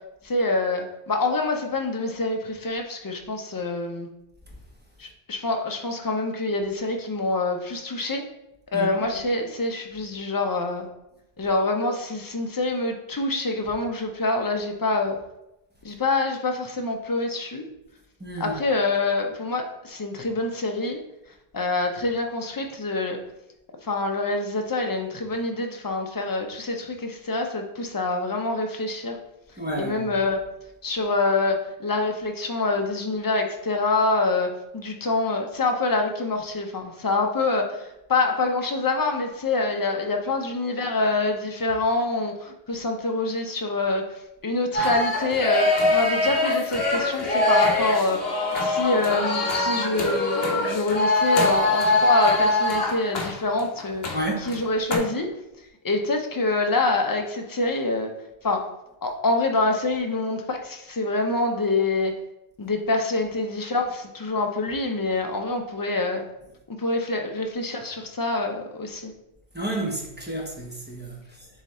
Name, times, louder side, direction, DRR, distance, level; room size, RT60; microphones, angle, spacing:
voice 1, 0.2-4.1 5.0-8.2 8.7-10.9 11.4-15.2 15.8-17.6 18.4-21.0 21.5-23.2 23.8-29.2 29.8-30.4 30.8-44.0 44.4-48.2 48.6-54.0 54.4-55.3 55.8-58.1 58.4-58.6 59.0-62.1 62.6-66.2 66.7-69.1, left 2 dB, 35° left, 3 dB, 0.3 m, -26 dB
voice 2, 8.7-9.1 18.2-18.5 29.6-30.1 54.1-54.5 69.5-71.5, right 1 dB, 10° right, -2 dB, 0.7 m, -31 dB
sound 1, 44.7-54.2 54.4-54.5 54.9-55.0, left 2 dB, 75° left, 1.0 m, -23 dB
3.7 x 3.2 x 4.1 m, 0.87 s
omnidirectional pair, 1.0 m